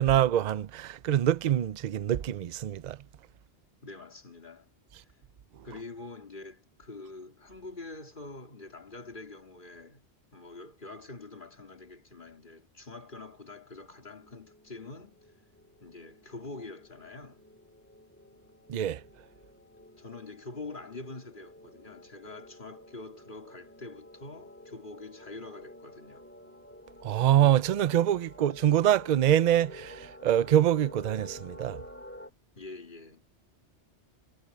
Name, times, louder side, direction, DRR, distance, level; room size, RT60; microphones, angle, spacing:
voice 1, 0.0-3.0 18.7-19.0 27.0-31.8, right 11 dB, 50° right, 0.6 m, -25 dB
voice 2, 3.8-5.2 5.6-10.1 10.3-15.3 15.8-17.4 20.0-26.2 32.5-33.2, left 3 dB, 45° left, 2.9 m, -45 dB
sound 1, 14.0-32.3, left 1 dB, 10° left, 2.5 m, -51 dB
omnidirectional pair, 1.2 m